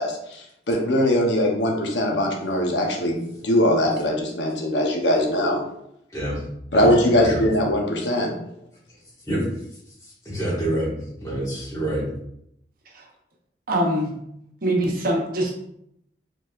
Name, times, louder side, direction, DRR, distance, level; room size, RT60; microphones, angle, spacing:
voice 1, 0.0-3.2 3.4-5.6 6.7-8.3, left 1 dB, 85° left, 0 dB, 0.9 m, -21 dB
voice 2, 10.0-10.9 11.2-12.1, right 1 dB, 20° left, -6 dB, 1.8 m, -27 dB
voice 3, 13.7-14.1 14.6-15.5, right 1 dB, 55° right, 0 dB, 0.9 m, -23 dB
4.6 x 4.0 x 2.5 m, 0.75 s
head